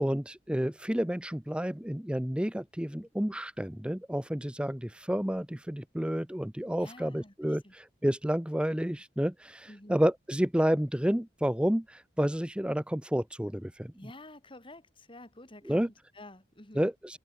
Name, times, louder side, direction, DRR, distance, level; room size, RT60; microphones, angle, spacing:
voice 1, 0.0-13.9 15.6-15.9 16.7-17.2, equal, 5° right, 0.8 m, -30 dB
voice 2, 6.8-7.7 9.7-10.1 14.0-16.9, left 1 dB, 30° left, 4.6 m, -50 dB
head